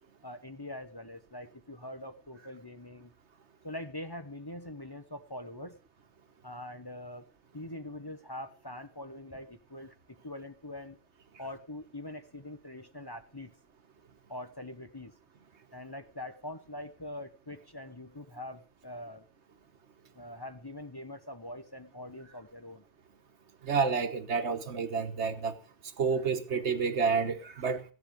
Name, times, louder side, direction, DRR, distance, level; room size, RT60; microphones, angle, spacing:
voice 1, 0.2-3.1 3.6-5.8 6.4-7.3 7.5-11.0 11.4-13.5 14.3-15.1 15.7-19.3 20.1-22.8, left 1 dB, 25° left, 0.9 m, -43 dB
voice 2, 23.6-25.6 26.0-27.8, right 5 dB, 85° right, 1.5 m, -29 dB
15.0 x 10.0 x 5.1 m
omnidirectional pair, 1.1 m